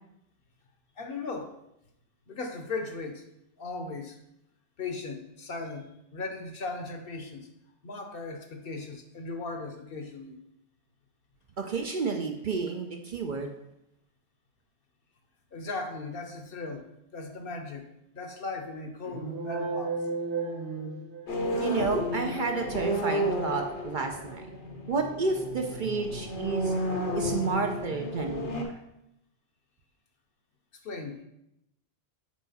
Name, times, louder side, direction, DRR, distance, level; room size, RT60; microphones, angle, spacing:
voice 1, 1.0-1.5 2.3-3.2 3.6-4.2 4.8-7.5 7.8-10.4 15.5-16.9 17.1-17.9 18.1-19.9 30.8-31.2, left 3 dB, 60° left, 5 dB, 0.9 m, -37 dB
voice 2, 11.6-13.5 21.6-24.4 24.9-26.7 27.1-28.7, right 4 dB, 55° right, 3 dB, 0.6 m, -30 dB
sound 1, 19.0-21.6, right 4 dB, 80° right, 1.5 m, -33 dB
sound 2, 21.3-28.6, equal, 80° left, 1.3 m, -32 dB
6.3 x 4.5 x 4.1 m, 0.83 s
omnidirectional pair, 1.2 m